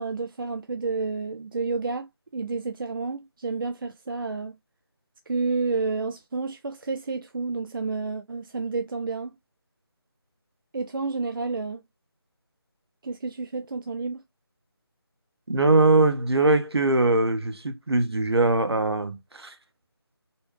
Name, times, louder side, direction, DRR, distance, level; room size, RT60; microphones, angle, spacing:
voice 1, 0.0-4.6 5.3-9.4 10.7-11.8 13.0-14.2, right 4 dB, 55° right, 0.4 m, -30 dB
voice 2, 15.5-19.5, right 2 dB, 75° right, 0.9 m, -21 dB
4.1 x 2.2 x 3.1 m
figure-of-eight pair, 165°, 13 cm